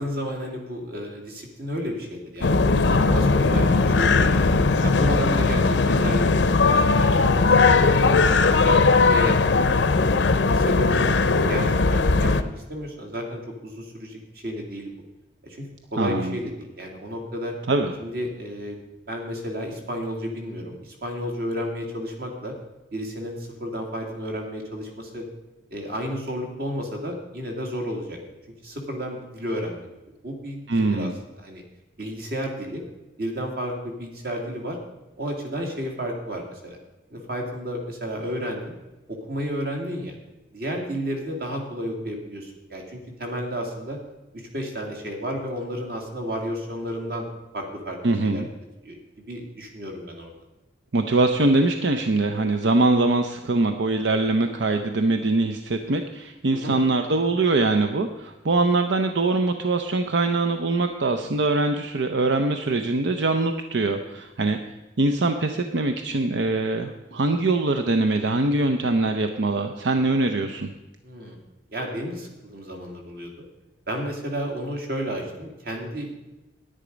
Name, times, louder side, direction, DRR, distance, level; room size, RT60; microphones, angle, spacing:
voice 1, 0.0-4.4 4.8-9.6 10.3-12.3 12.7-14.9 15.4-17.5 18.0-18.8 19.1-22.5 22.9-25.2 25.7-28.2 28.6-29.9 30.2-31.1 31.4-31.6 32.0-32.8 33.2-34.8 35.2-36.8 37.1-38.7 39.1-40.1 40.5-44.0 44.3-47.3 47.5-48.0 48.2-48.4 48.8-49.0 49.3-50.3 56.5-56.8 71.0-71.4 71.7-73.3 73.9-76.1, equal, 55° right, 2 dB, 2.1 m, -32 dB
sound 1, 2.4-12.4, left 3 dB, 85° left, 0.6 m, -19 dB
voice 2, 16.0-16.4 17.7-17.9 30.7-31.2 48.0-48.5 50.9-64.6 65.0-70.7, right 2 dB, 85° right, 6 dB, 0.6 m, -23 dB
10.0 x 9.7 x 5.1 m, 1.0 s
head